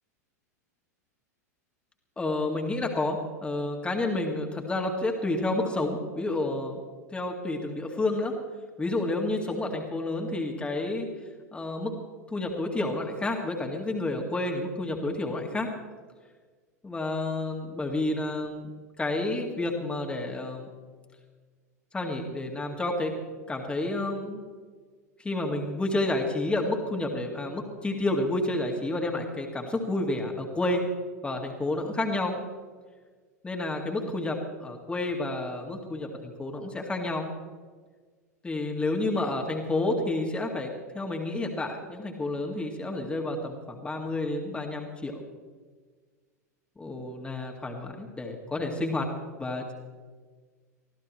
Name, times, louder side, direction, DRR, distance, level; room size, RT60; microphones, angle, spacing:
voice 1, 2.2-6.8 7.1-8.3 8.8-11.1 11.5-11.9 12.3-15.7 16.8-18.7 19.0-20.7 21.9-23.1 23.5-24.4 25.2-30.8 31.2-32.3 33.4-37.3 38.4-45.2 46.8-49.1 49.4-49.7, left 2 dB, 10° left, 1 dB, 2.1 m, -30 dB
24.5 x 15.0 x 3.2 m, 1.5 s
figure-of-eight pair, 90°, 9 cm